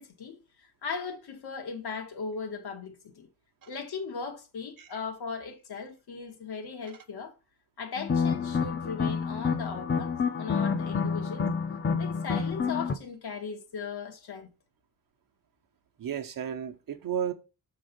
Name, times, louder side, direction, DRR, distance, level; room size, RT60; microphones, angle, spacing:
voice 1, 0.0-3.3 3.7-7.3 7.8-11.5 12.0-14.5, left 5 dB, 80° left, 1.6 m, -38 dB
sound 1, 8.0-13.0, left 5 dB, 30° left, 0.6 m, -28 dB
voice 2, 16.0-17.3, right 9 dB, 60° right, 1.0 m, -33 dB
7.0 x 3.8 x 5.2 m
wide cardioid pair, 175°, 38 cm